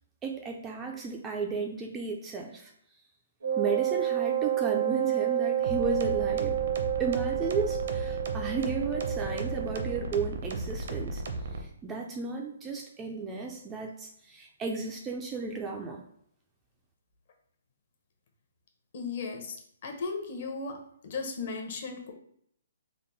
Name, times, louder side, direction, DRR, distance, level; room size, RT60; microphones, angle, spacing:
voice 1, 0.2-2.7 3.6-6.6 7.0-11.2 11.6-16.0, right 4 dB, 10° right, 1 dB, 0.3 m, -34 dB
Wind instrument woodwind instrument, 3.4-10.1, right 11 dB, 90° right, 0.8 m, -29 dB
sound 1, 5.6-11.6, right 3 dB, 55° right, 0.6 m, -35 dB
voice 2, 18.9-19.6 19.8-20.8 21.0-22.1, left 4 dB, 45° left, 2 dB, 0.8 m, -35 dB
3.4 x 2.1 x 3.9 m, 0.69 s
hypercardioid pair, 165°, 0 cm